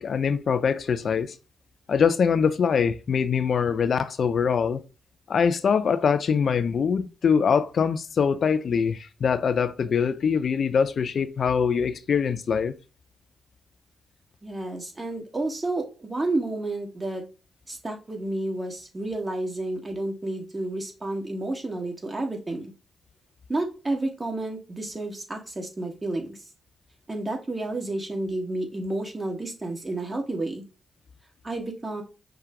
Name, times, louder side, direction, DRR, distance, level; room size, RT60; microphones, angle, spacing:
voice 1, 0.0-1.4 1.9-4.8 5.3-12.7, left 6 dB, 60° left, 0.3 m, -23 dB
voice 2, 14.4-17.2 17.7-22.7 23.5-26.4 27.1-30.6 31.4-32.0, right 2 dB, 30° right, 1.5 m, -30 dB
5.8 x 2.2 x 3.6 m
hypercardioid pair, 40°, 0 cm